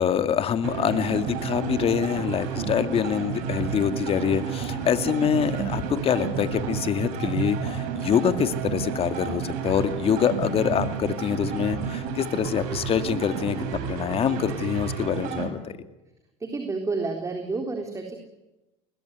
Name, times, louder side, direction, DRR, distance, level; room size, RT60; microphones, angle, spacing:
voice 1, 0.0-15.8, left 8 dB, 40° left, 10 dB, 2.3 m, -25 dB
sound 1, 0.6-15.5, right 7 dB, 70° right, 6.1 m, -31 dB
voice 2, 16.4-18.2, right 3 dB, 20° right, 4 dB, 3.8 m, -30 dB
22.0 x 20.0 x 9.4 m, 1.0 s
supercardioid pair, 90°, 14 cm